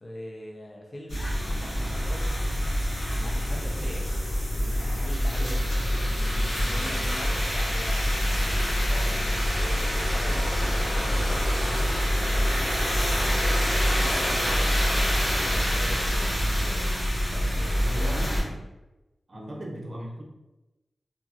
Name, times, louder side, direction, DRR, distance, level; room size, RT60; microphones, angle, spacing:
voice 1, 0.0-2.3 3.1-4.1 4.6-5.8 6.1-8.1 8.6-10.5 10.8-12.9 13.3-13.5 14.0-18.2 19.3-19.7, left 1 dB, 35° left, -1 dB, 0.6 m, -41 dB
sound 1, 1.1-18.4, equal, 60° left, 1.1 m, -25 dB
voice 2, 5.3-6.0 17.9-18.6 19.3-20.2, right 1 dB, 50° right, -1 dB, 0.6 m, -38 dB
2.8 x 2.4 x 2.4 m, 1.0 s
wide cardioid pair, 75°, 0 cm